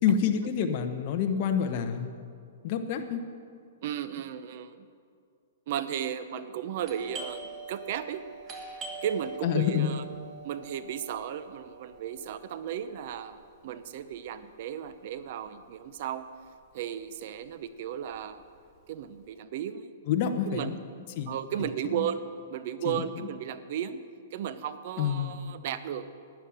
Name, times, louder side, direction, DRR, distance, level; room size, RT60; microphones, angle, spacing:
voice 1, 0.0-2.1 2.6-3.2 9.4-9.9 20.1-20.8 21.2-21.3 21.6-22.1 22.8-23.0 25.0-25.4, left 8 dB, 40° left, 6 dB, 1.2 m, -28 dB
voice 2, 3.8-4.9 5.7-8.2 9.0-10.0 10.4-16.3 16.7-18.4 18.9-19.9 20.5-20.8 21.3-22.2 22.5-24.0 24.3-26.1, right 9 dB, 50° right, 13 dB, 0.8 m, -35 dB
Doorbell, 6.8-16.2 16.5-16.6 17.2-17.5 17.9-19.2, right 4 dB, 25° right, 1.8 m, -45 dB
12.0 x 9.7 x 8.7 m, 2.3 s
hypercardioid pair, 155°, 0 cm